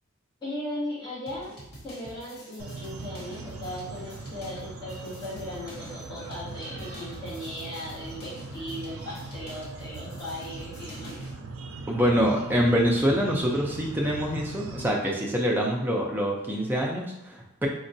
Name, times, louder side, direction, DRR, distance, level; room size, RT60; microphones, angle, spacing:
voice 1, 0.4-1.5 1.8-11.2, left 1 dB, 20° left, -10 dB, 1.1 m, -37 dB
sound 1, 1.3-11.4, equal, 45° left, 0.9 m, -47 dB
sound 2, 2.6-14.9, right 3 dB, 80° right, 0.4 m, -40 dB
voice 2, 11.9-17.7, equal, 10° right, -2 dB, 0.4 m, -25 dB
3.8 x 2.2 x 2.6 m, 0.87 s
head